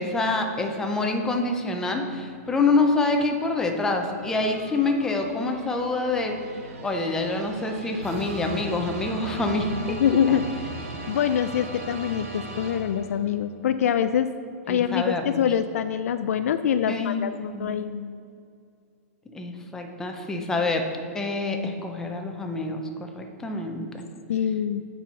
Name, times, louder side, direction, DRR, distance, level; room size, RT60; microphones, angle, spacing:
voice 1, 0.0-6.4 6.8-10.4 14.7-15.4 16.9-17.9 19.3-20.8 21.1-22.8 23.2-24.0, left 3 dB, 5° left, 3 dB, 0.5 m, -26 dB
sound 1, 3.9-13.4, right 2 dB, 65° right, 1.4 m, -38 dB
voice 2, 9.9-10.4 11.1-14.3 14.7-17.9 24.3-24.8, left 9 dB, 70° left, 10 dB, 0.3 m, -24 dB
8.4 x 5.5 x 4.4 m, 2.4 s
hypercardioid pair, 165°, 8 cm